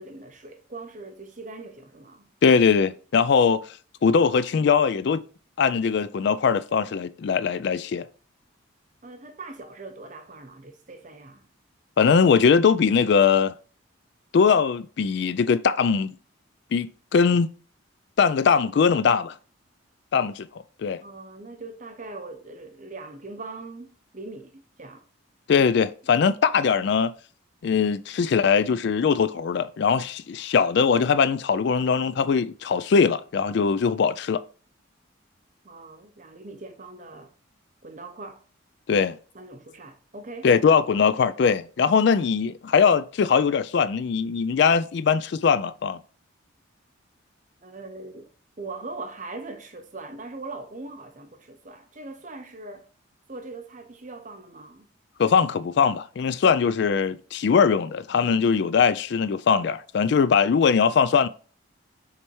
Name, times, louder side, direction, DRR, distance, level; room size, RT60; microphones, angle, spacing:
voice 1, 0.0-2.3 9.0-11.5 21.0-25.0 35.6-37.3 37.8-38.4 39.3-40.5 47.6-48.3 48.6-52.9 53.3-54.9, right 3 dB, 40° right, 0.8 m, -41 dB
voice 2, 2.4-3.6 4.0-5.2 5.6-8.1 12.0-13.5 14.3-16.1 16.7-17.5 18.2-19.4 20.1-20.5 20.8-21.0 25.5-27.1 27.6-34.4 38.9-39.2 40.4-46.0 55.2-61.3, left 6 dB, 55° left, 0.3 m, -21 dB
7.1 x 3.3 x 4.6 m
head